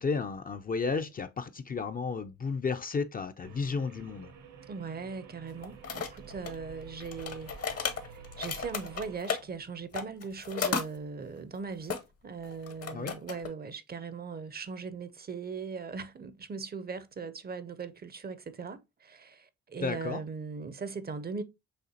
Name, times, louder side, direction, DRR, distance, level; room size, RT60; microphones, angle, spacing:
voice 1, 0.0-4.3 12.9-13.1 19.8-20.2, left 4 dB, 30° left, 0.4 m, -33 dB
sound 1, 3.4-9.2, right 5 dB, 65° right, 0.9 m, -49 dB
voice 2, 4.7-21.4, right 5 dB, 35° right, 0.6 m, -39 dB
sound 2, 5.6-6.6 7.0-9.4 9.9-10.8 11.9-12.0 12.4-13.5, left 6 dB, 55° left, 0.9 m, -34 dB
6.4 x 2.5 x 2.8 m
cardioid pair, 70°, 29 cm